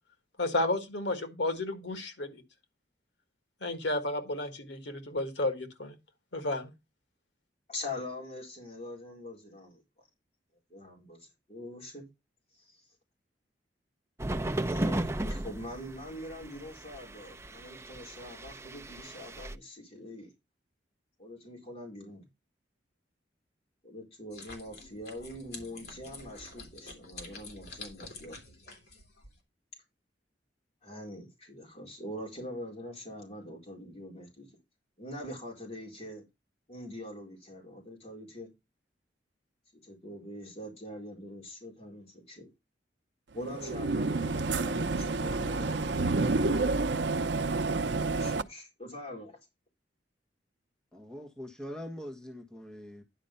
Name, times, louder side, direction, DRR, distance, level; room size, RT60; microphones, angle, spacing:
voice 1, 0.4-2.4 3.6-6.0 6.3-6.7, left 2 dB, 85° left, 1.7 m, -32 dB
voice 2, 7.7-9.8 10.7-12.0 12.6-12.8 14.6-20.3 21.2-22.3 23.8-28.4 30.8-34.5 35.0-36.2 36.7-38.5 39.8-42.5 43.3-45.9 47.8-49.4, left 1 dB, 35° left, 4.3 m, -43 dB
sound 1, 14.2-19.5, right 1 dB, 15° right, 0.6 m, -35 dB
sound 2, 24.3-29.4, left 3 dB, 60° left, 3.0 m, -48 dB
sound 3, 43.4-48.4, right 3 dB, 80° right, 0.7 m, -29 dB
voice 3, 50.9-53.0, equal, 5° left, 1.4 m, -43 dB
10.5 x 5.1 x 5.6 m
head